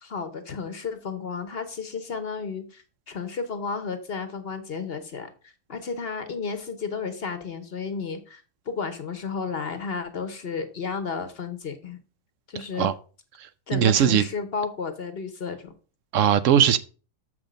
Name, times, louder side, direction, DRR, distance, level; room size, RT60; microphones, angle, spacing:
voice 1, 0.0-12.0 12.5-12.9 13.7-15.7, left 5 dB, 45° left, 1.0 m, -33 dB
voice 2, 13.4-14.2 16.1-16.8, right 9 dB, 65° right, 0.8 m, -20 dB
6.9 x 6.2 x 5.0 m
omnidirectional pair, 1.7 m